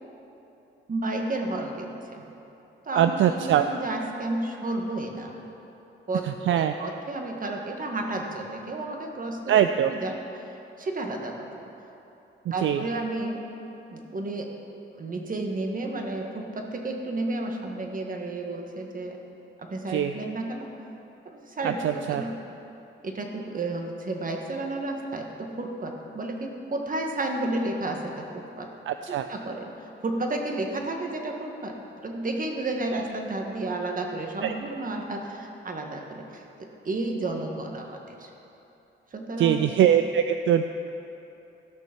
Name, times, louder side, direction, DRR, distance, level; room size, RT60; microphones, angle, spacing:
voice 1, 0.9-2.2 2.8-5.3 6.1-9.6 9.9-11.5 12.5-13.4 13.9-14.5 15.0-19.2 19.6-20.7 21.2-22.5 23.0-28.7 29.1-36.4 36.8-38.3 39.1-39.8, right 2 dB, 40° right, 2 dB, 1.6 m, -32 dB
voice 2, 2.9-3.7 6.5-6.7 9.5-9.9 12.6-12.8 19.9-20.1 21.6-22.2 28.9-29.3 32.9-33.0 34.4-34.5 39.4-40.7, right 10 dB, 70° right, 8 dB, 0.4 m, -22 dB
15.5 x 6.3 x 6.0 m, 3.0 s
cardioid pair, 80°, 21 cm